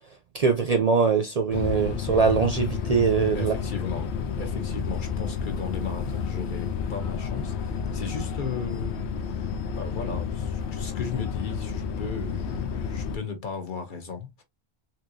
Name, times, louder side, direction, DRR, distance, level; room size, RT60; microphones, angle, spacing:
voice 1, 0.3-3.5, right 5 dB, 50° right, 0.5 m, -22 dB
sound 1, 1.5-13.2, left 6 dB, 90° left, 0.9 m, -31 dB
voice 2, 3.3-4.1 4.4-14.4, left 5 dB, 50° left, 1.0 m, -36 dB
3.5 x 2.8 x 2.6 m
omnidirectional pair, 1.1 m